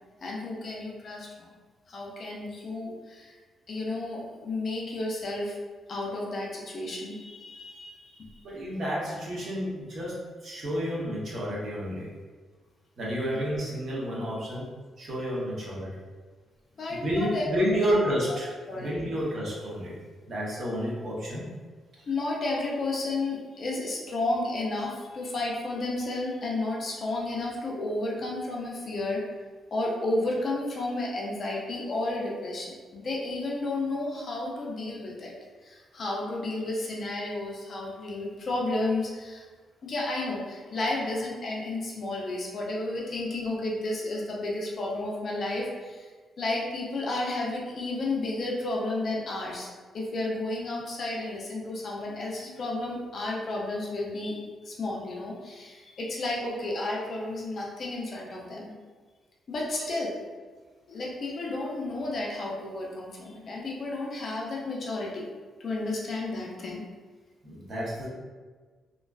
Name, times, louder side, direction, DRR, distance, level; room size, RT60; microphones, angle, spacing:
voice 1, 0.2-1.5 1.9-3.4 3.7-5.6 5.9-8.4 13.3-13.4 16.8-17.5 17.9-18.0 18.7-19.1 22.0-29.2 29.7-35.3 35.6-39.4 39.8-46.1 46.4-49.7 49.9-58.7 59.5-60.2 60.9-65.2 65.6-66.8, left 2 dB, 40° left, -2 dB, 0.4 m, -32 dB
voice 2, 8.4-12.1 13.0-14.7 15.0-15.9 16.9-19.9 20.3-21.5 59.8-59.9 67.4-68.1, equal, 45° right, -5 dB, 0.6 m, -30 dB
2.4 x 2.2 x 2.2 m, 1.4 s
cardioid pair, 165°, 0 cm